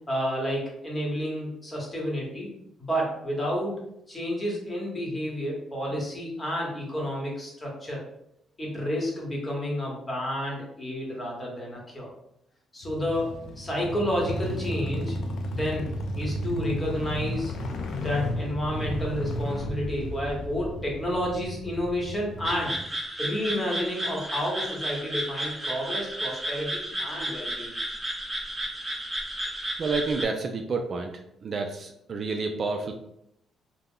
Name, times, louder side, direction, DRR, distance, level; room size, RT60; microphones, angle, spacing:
voice 1, 0.1-2.5 2.8-3.8 4.1-8.0 8.6-12.1 12.7-15.2 15.5-17.5 17.9-22.7 23.2-27.8, equal, 20° left, -2 dB, 1.1 m, -30 dB
sound 1, 12.8-22.8, left 1 dB, 70° left, 0.4 m, -33 dB
sound 2, 22.4-30.2, right 1 dB, 15° right, 0.9 m, -33 dB
voice 2, 29.8-32.9, right 4 dB, 50° right, 4 dB, 0.3 m, -30 dB
2.2 x 2.0 x 3.6 m, 0.77 s
cardioid pair, 90°, 0 cm